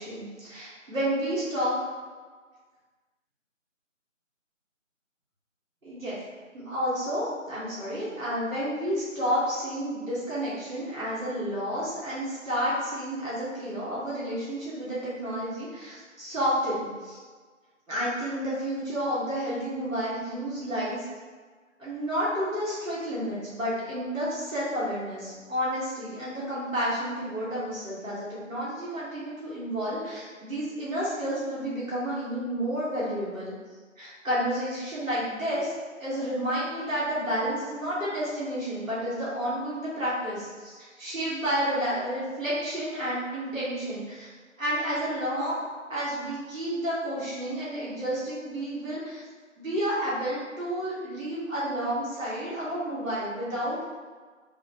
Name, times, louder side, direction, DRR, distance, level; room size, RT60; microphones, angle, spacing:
voice 1, 0.0-1.8 5.8-6.2 6.5-17.2 17.9-21.0 21.8-33.5 34.0-35.7 36.0-44.3 44.6-45.6 45.9-49.2 49.6-53.8, equal, 80° right, -9 dB, 1.2 m, -30 dB
3.0 x 2.1 x 2.8 m, 1.5 s
figure-of-eight pair, 170°, 40 cm